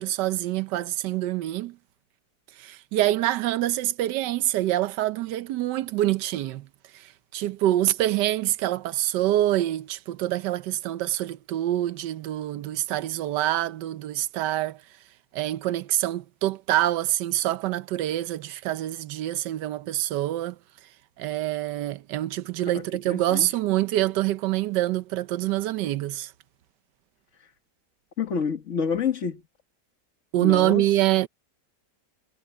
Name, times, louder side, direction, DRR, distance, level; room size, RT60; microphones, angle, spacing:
voice 1, 0.0-1.8 2.6-6.7 6.9-14.8 15.3-20.6 21.2-26.3 30.3-31.3, right 14 dB, 80° right, 1.3 m, -26 dB
voice 2, 23.1-23.5 28.2-29.4 30.4-30.8, left 6 dB, 45° left, 1.7 m, -28 dB
omnidirectional pair, 1.8 m